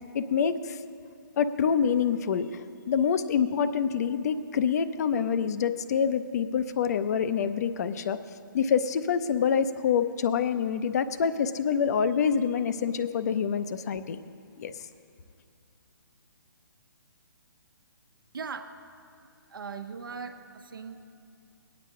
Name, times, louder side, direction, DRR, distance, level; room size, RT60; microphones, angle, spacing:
voice 1, 0.1-0.8 1.4-8.2 8.5-14.2 14.6-14.7, left 7 dB, 50° left, 12 dB, 0.6 m, -26 dB
voice 2, 18.3-18.7 19.5-21.0, right 5 dB, 75° right, 6 dB, 0.9 m, -39 dB
18.5 x 9.5 x 3.7 m, 2.5 s
hypercardioid pair, 145°, 11 cm